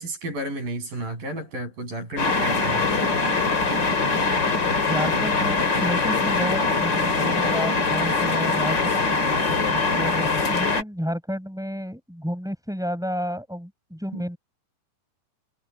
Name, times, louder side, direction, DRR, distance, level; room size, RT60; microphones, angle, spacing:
voice 1, 0.0-2.9 14.1-14.2, right 1 dB, 75° right, 9.1 m, -32 dB
sound 1, 2.2-10.8, left 4 dB, 35° left, 3.1 m, -22 dB
voice 2, 4.7-8.8 9.0-9.4 9.7-14.4, equal, ahead, 7.1 m, -31 dB
omnidirectional pair, 4.0 m